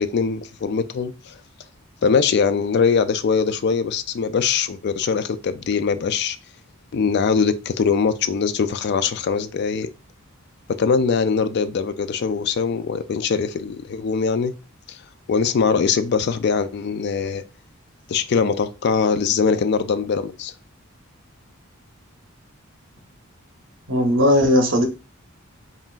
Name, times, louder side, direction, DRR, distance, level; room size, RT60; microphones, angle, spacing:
voice 1, 0.0-1.3 2.0-6.4 6.9-9.9 10.8-14.5 14.9-15.0 15.3-17.4 18.1-20.5, left 5 dB, 55° left, 0.3 m, -22 dB
voice 2, 23.9-24.8, left 1 dB, 60° right, 0.9 m, -17 dB
5.4 x 2.5 x 2.4 m
head